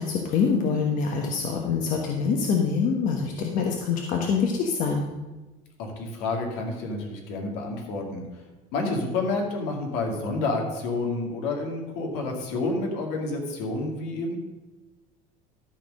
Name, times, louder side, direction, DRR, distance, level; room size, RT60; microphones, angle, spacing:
voice 1, 0.0-5.1, left 5 dB, 55° left, 1 dB, 1.2 m, -25 dB
voice 2, 5.8-8.2 8.7-14.4, left 3 dB, 85° left, 1 dB, 2.3 m, -29 dB
13.0 x 4.4 x 6.4 m, 1.2 s
cardioid pair, 135°, 17 cm